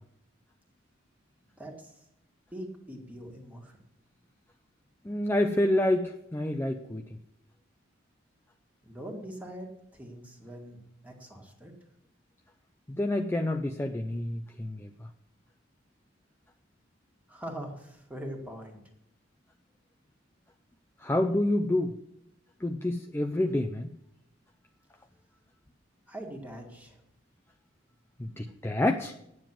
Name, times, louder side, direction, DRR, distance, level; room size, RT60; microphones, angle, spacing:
voice 1, 1.6-1.9 2.5-3.7 8.8-10.8 11.0-11.7 17.3-18.8 26.1-26.9, right 1 dB, 10° right, 1 dB, 1.9 m, -42 dB
voice 2, 5.0-7.0 12.9-14.9 21.0-21.9 22.6-23.9 28.2-29.1, left 1 dB, 10° left, 5 dB, 0.5 m, -28 dB
9.4 x 7.0 x 7.4 m, 0.80 s
head